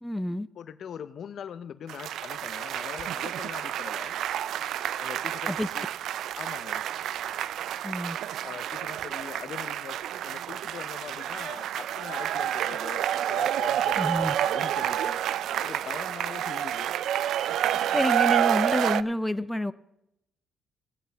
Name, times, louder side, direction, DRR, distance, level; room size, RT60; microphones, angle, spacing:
voice 1, 0.0-0.5 5.5-5.7 7.8-8.2 14.0-14.3 17.7-19.7, left 1 dB, 5° left, 13 dB, 0.5 m, -28 dB
voice 2, 0.6-4.1 5.0-5.9 6.4-6.8 8.4-14.0 14.4-15.2 15.6-16.9, left 8 dB, 60° left, 14 dB, 0.5 m, -42 dB
sound 1, 1.9-19.0, right 11 dB, 75° right, 0.3 m, -29 dB
16.5 x 9.2 x 3.4 m, 0.83 s
cardioid pair, 90°, 0 cm